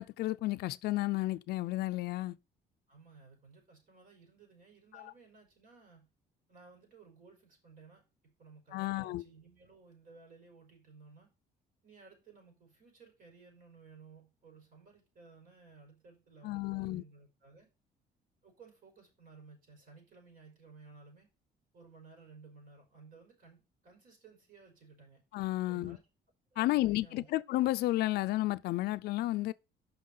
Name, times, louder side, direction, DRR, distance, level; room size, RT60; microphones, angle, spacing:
voice 1, 0.0-2.4 4.9-5.1 8.7-9.2 16.4-17.0 25.3-26.0 26.6-29.5, left 17 dB, 75° left, 0.4 m, -32 dB
voice 2, 2.9-6.1 6.5-8.0 8.4-11.3 11.8-17.7 18.4-21.3 21.7-25.2 25.7-26.0 26.5-27.3, right 4 dB, 55° right, 5.0 m, -57 dB
6.0 x 5.5 x 6.6 m
cardioid pair, 110°, 17 cm